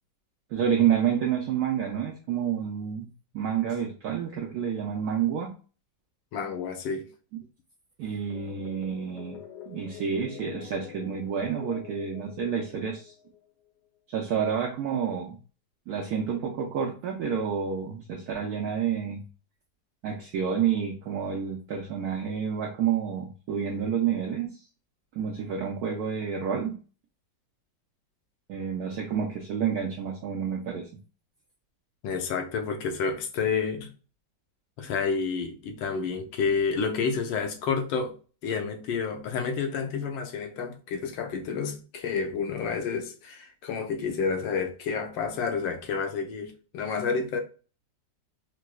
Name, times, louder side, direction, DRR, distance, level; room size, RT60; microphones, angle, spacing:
voice 1, 0.5-5.5 8.0-9.4 9.7-13.1 14.1-15.4 15.9-19.2 20.0-24.6 25.1-26.8 28.5-30.9, right 8 dB, 70° right, 0.9 m, -29 dB
voice 2, 6.3-7.1 32.0-33.9 34.8-38.2 38.4-47.4, left 5 dB, 90° left, 1.3 m, -29 dB
sound 1, 8.3-13.5, left 9 dB, 70° left, 1.2 m, -45 dB
4.7 x 2.0 x 2.3 m
omnidirectional pair, 2.0 m